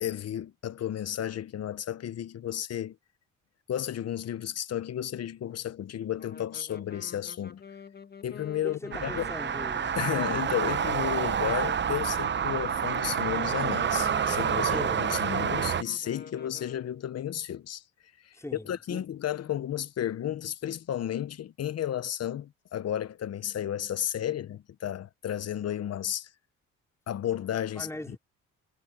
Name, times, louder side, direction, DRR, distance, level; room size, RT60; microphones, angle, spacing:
voice 1, 0.0-2.9 3.7-7.6 8.2-9.2 9.9-17.8 18.6-26.3 27.1-27.9, left 11 dB, 55° left, 1.0 m, -33 dB
sound 1, 6.1-17.1, left 5 dB, 35° left, 1.5 m, -48 dB
voice 2, 8.6-9.9 14.6-15.1 18.3-19.0 27.8-28.2, left 1 dB, 10° left, 4.4 m, -40 dB
sound 2, 8.9-15.8, right 8 dB, 40° right, 0.8 m, -28 dB
cardioid pair, 90°, 30 cm